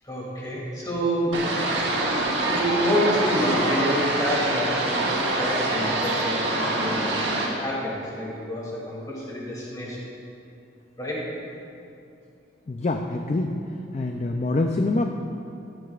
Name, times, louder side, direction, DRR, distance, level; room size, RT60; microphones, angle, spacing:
voice 1, 0.0-1.4 2.4-7.1 7.6-10.0 11.0-11.3, equal, 20° left, -6 dB, 2.6 m, -28 dB
sound 1, 1.3-7.5, right 2 dB, 75° right, 1.7 m, -25 dB
voice 2, 12.7-13.6 13.9-15.1, left 2 dB, 35° left, 4 dB, 0.4 m, -25 dB
14.5 x 11.0 x 2.4 m, 2.7 s
head